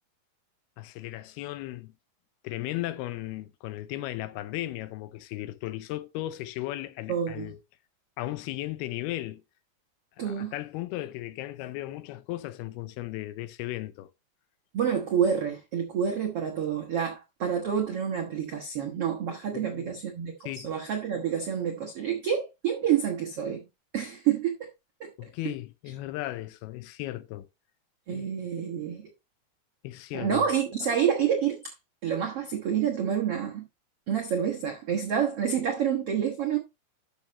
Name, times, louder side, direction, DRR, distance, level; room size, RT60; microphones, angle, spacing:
voice 1, 0.8-1.9 2.4-7.6 8.2-9.4 10.2-14.1 19.5-19.9 20.4-20.7 25.2-27.5 28.1-28.3 29.8-30.4, left 16 dB, 80° left, 2.6 m, -36 dB
voice 2, 7.1-7.5 10.2-10.5 14.7-23.6 23.9-24.6 25.0-25.1 28.1-29.1 30.1-31.7 32.0-33.7 34.1-36.6, right 8 dB, 75° right, 1.3 m, -28 dB
12.0 x 6.4 x 3.0 m
omnidirectional pair, 4.7 m